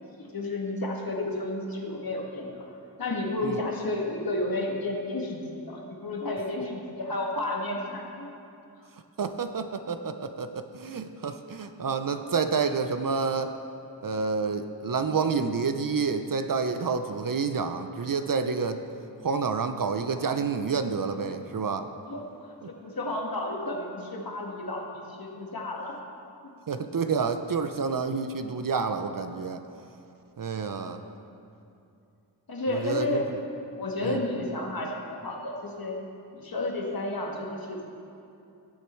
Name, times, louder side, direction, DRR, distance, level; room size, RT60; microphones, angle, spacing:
voice 1, 0.0-2.7 3.0-8.3 22.1-26.0 31.0-31.2 32.5-33.3 33.8-36.0 36.3-37.9, left 2 dB, 50° left, 0 dB, 1.9 m, -32 dB
voice 2, 9.2-13.5 14.0-18.8 19.2-21.9 26.7-29.6 30.4-31.0 32.7-33.2 34.0-34.2, right 5 dB, 50° right, 8 dB, 0.6 m, -29 dB
16.5 x 6.9 x 4.5 m, 2.6 s
cardioid pair, 55°, 44 cm